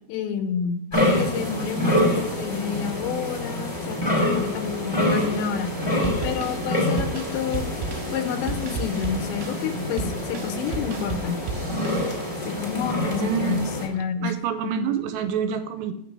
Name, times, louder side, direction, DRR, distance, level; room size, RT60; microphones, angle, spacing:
voice 1, 0.1-0.8 1.2-5.7 6.2-7.7 8.1-11.4 12.4-14.3 14.6-14.9, left 7 dB, 85° left, 7 dB, 3.2 m, -29 dB
sound 1, 0.9-13.9, left 1 dB, 10° left, 1.6 m, -26 dB
sound 2, 6.0-12.5, right 3 dB, 65° right, 2.5 m, -34 dB
voice 2, 13.2-13.7 14.2-15.9, right 8 dB, 85° right, 8 dB, 2.8 m, -27 dB
6.9 x 5.8 x 7.4 m, 0.75 s
omnidirectional pair, 5.1 m